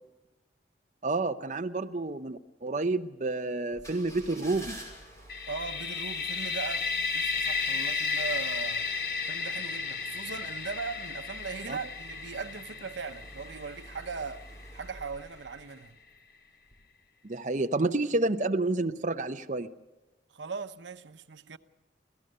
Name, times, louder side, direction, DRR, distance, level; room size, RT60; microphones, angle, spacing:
voice 1, 1.0-4.8 11.7-11.8 17.2-19.7, right 2 dB, 40° right, 0.7 m, -29 dB
sound 1, 3.7-16.2 16.6-16.8, right 1 dB, 15° left, 5.4 m, -50 dB
sound 2, 5.3-15.0, left 5 dB, 55° left, 1.2 m, -33 dB
voice 2, 5.5-8.9 9.3-14.5 14.7-16.0 20.3-21.6, right 5 dB, 85° right, 0.9 m, -39 dB
26.5 x 16.5 x 6.6 m
head